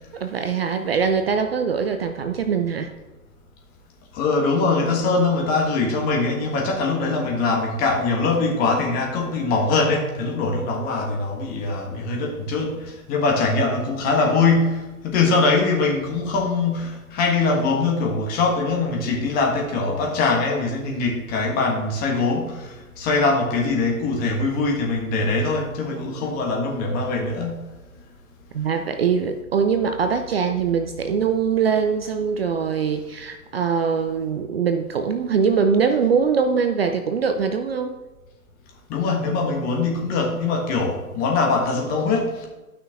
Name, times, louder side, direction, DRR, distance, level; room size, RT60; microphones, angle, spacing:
voice 1, 0.1-2.9 28.5-37.9, right 6 dB, 40° right, 7 dB, 0.5 m, -22 dB
voice 2, 4.1-27.6 38.9-42.5, left 3 dB, 20° left, 0 dB, 1.5 m, -22 dB
13.0 x 5.9 x 3.6 m, 1.1 s
figure-of-eight pair, 130°, 45 cm